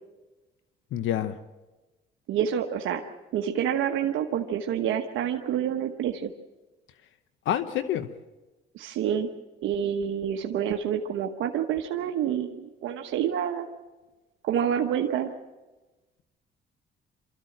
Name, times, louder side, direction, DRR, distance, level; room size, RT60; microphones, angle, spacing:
voice 1, 0.9-1.4 7.4-8.1, left 11 dB, 80° left, 11 dB, 0.9 m, -27 dB
voice 2, 2.3-3.0 3.3-6.3 8.7-9.3 9.6-13.7 14.4-15.3, right 9 dB, 85° right, 3 dB, 1.2 m, -28 dB
25.5 x 14.0 x 7.9 m, 1.1 s
cardioid pair, 90°, 20 cm